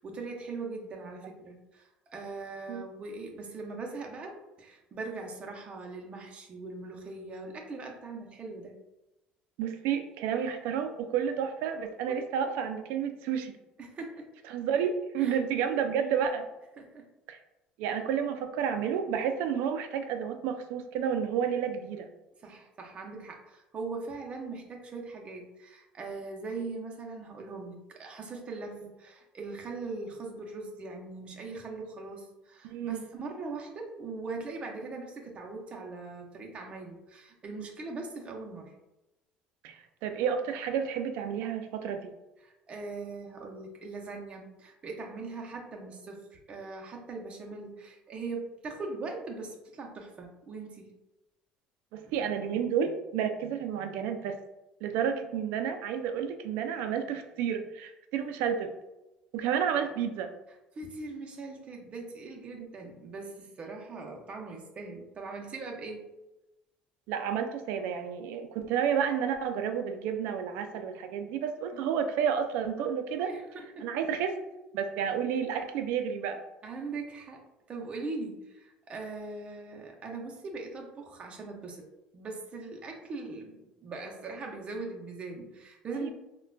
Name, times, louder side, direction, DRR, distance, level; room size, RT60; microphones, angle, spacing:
voice 1, 0.0-8.8 12.1-12.2 13.8-14.3 15.2-15.8 16.8-17.1 22.4-38.7 42.4-50.9 52.0-52.1 58.2-58.5 60.7-66.1 71.7-71.8 73.2-73.9 76.6-81.8 82.1-86.1, right 3 dB, 35° right, 1 dB, 0.6 m, -41 dB
voice 2, 9.6-13.6 14.5-16.5 17.3-17.4 17.8-22.1 32.6-33.0 39.6-42.1 51.9-54.4 54.8-58.7 59.3-60.3 62.6-62.7 67.1-73.3 73.8-74.4 74.7-76.4 86.0-86.1, right 8 dB, 80° right, 7 dB, 0.3 m, -31 dB
3.7 x 2.2 x 2.2 m, 0.96 s
cardioid pair, 120°, 4 cm